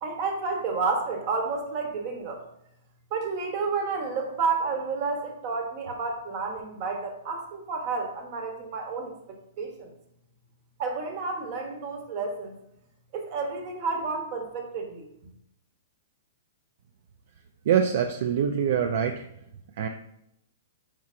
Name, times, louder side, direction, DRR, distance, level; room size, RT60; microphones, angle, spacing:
voice 1, 0.0-2.4 3.1-9.9 10.8-12.5 13.1-15.1, right 4 dB, 45° right, 3 dB, 1.0 m, -30 dB
voice 2, 17.7-19.2 19.8-19.9, right 8 dB, 60° right, 5 dB, 0.3 m, -24 dB
4.5 x 4.4 x 2.5 m, 0.78 s
hypercardioid pair, 135°, 0 cm